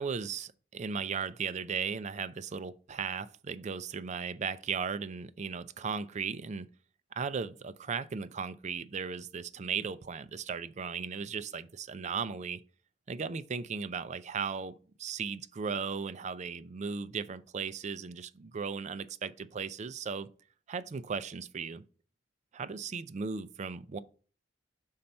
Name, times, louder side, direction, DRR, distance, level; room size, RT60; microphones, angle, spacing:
voice 1, 0.0-6.7 7.1-12.6 13.1-20.3 20.7-21.8 22.5-24.0, right 5 dB, 40° right, 0.4 m, -36 dB
5.6 x 4.3 x 5.2 m
head